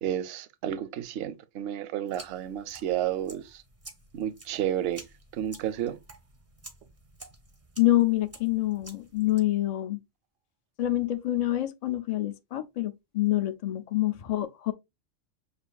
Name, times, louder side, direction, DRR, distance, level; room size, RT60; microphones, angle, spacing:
voice 1, 0.0-3.6 4.1-5.1 5.3-6.0, right 11 dB, 65° right, 0.7 m, -31 dB
sound 1, 2.1-9.4, right 2 dB, 20° right, 0.4 m, -51 dB
voice 2, 7.8-10.0 10.8-14.7, left 15 dB, 70° left, 0.3 m, -26 dB
6.8 x 2.5 x 2.2 m
omnidirectional pair, 1.2 m